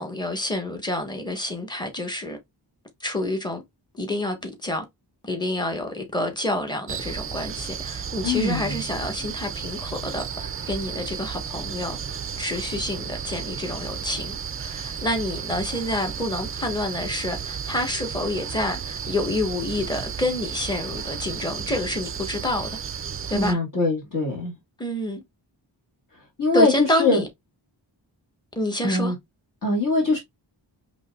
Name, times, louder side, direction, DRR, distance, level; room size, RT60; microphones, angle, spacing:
voice 1, 0.0-2.4 3.0-3.6 3.9-4.8 5.2-12.0 12.4-22.8 23.3-23.6 24.8-25.2 26.5-27.3 28.6-29.1, left 1 dB, 10° left, 1.2 m, -28 dB
sound 1, 6.9-23.5, right 7 dB, 30° right, 0.4 m, -33 dB
voice 2, 8.2-8.8 23.3-24.5 26.4-27.2 28.8-29.1 29.6-30.2, left 2 dB, 45° left, 1.8 m, -22 dB
5.4 x 3.0 x 2.3 m
wide cardioid pair, 85°, 45 cm